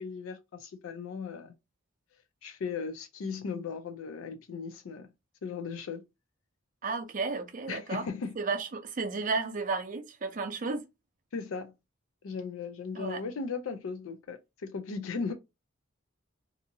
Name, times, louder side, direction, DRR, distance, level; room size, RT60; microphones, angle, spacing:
voice 1, 0.0-1.5 2.4-5.1 5.4-6.0 7.7-8.3 11.3-11.7 12.2-15.3, left 5 dB, 75° left, 0.4 m, -37 dB
voice 2, 6.8-8.1 8.4-10.9 13.0-13.2, right 4 dB, 40° right, 0.5 m, -33 dB
2.7 x 2.5 x 2.6 m
head